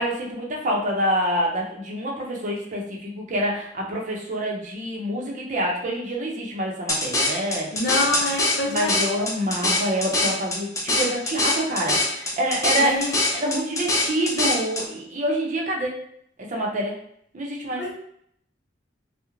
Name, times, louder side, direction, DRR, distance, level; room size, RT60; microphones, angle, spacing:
voice 1, 0.0-7.7 8.7-13.0 13.3-16.0 16.4-17.0 17.3-17.8, right 1 dB, 40° right, -1 dB, 0.6 m, -26 dB
sound 1, 6.9-14.8, left 2 dB, 15° left, 0.4 m, -24 dB
voice 2, 7.7-9.0 12.8-13.1 17.8-17.9, left 2 dB, 65° left, -1 dB, 0.6 m, -26 dB
2.4 x 2.0 x 3.0 m, 0.68 s
head